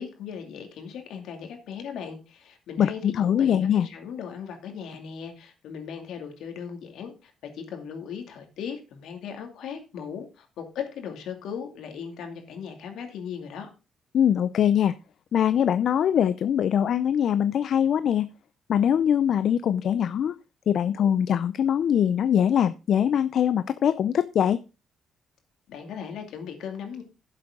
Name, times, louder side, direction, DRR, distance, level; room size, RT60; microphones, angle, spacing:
voice 1, 0.0-13.7 25.7-27.0, left 7 dB, 80° left, 4 dB, 2.4 m, -38 dB
voice 2, 2.8-3.9 14.1-14.9 15.3-18.3 18.7-20.3 20.7-24.6, left 9 dB, 65° left, 13 dB, 0.5 m, -22 dB
11.0 x 7.6 x 3.7 m, 0.31 s
cardioid pair, 90°, 0 cm